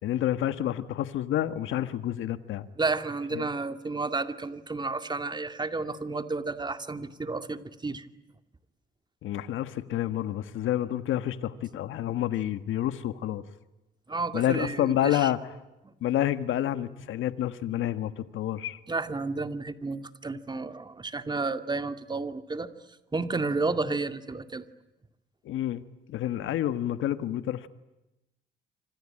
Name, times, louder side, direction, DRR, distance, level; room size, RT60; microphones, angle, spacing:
voice 1, 0.0-2.7 3.3-3.4 9.2-13.4 14.3-15.4 16.0-18.8 25.4-25.8 26.1-27.7, left 12 dB, 80° left, 11 dB, 1.5 m, -29 dB
voice 2, 2.8-8.1 14.1-15.3 18.9-22.7 23.1-24.6, right 3 dB, 20° right, 9 dB, 2.3 m, -31 dB
26.5 x 26.0 x 8.8 m, 0.97 s
cardioid pair, 90°, 20 cm